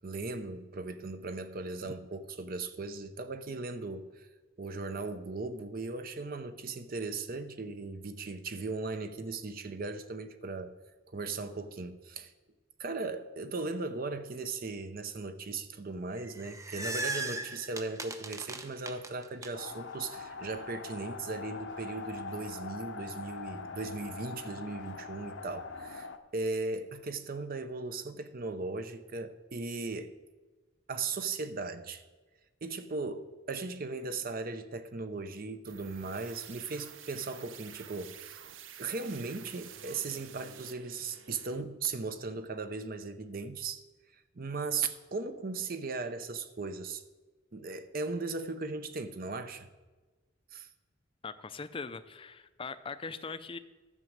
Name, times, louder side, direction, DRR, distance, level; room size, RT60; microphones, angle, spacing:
voice 1, 0.0-4.3 4.6-10.8 11.1-12.3 12.8-30.1 30.9-32.0 32.6-38.4 38.8-43.8 44.4-47.0 47.5-49.7 50.5-50.7, right 3 dB, 50° right, 0.7 m, -37 dB
sound 1, 16.2-19.5, right 2 dB, 15° right, 0.7 m, -38 dB
sound 2, 19.5-26.2, left 4 dB, 70° left, 0.8 m, -43 dB
sound 3, 35.6-41.6, right 9 dB, 90° right, 0.7 m, -50 dB
voice 2, 51.2-53.6, left 4 dB, 30° left, 0.5 m, -41 dB
11.0 x 6.2 x 7.3 m
head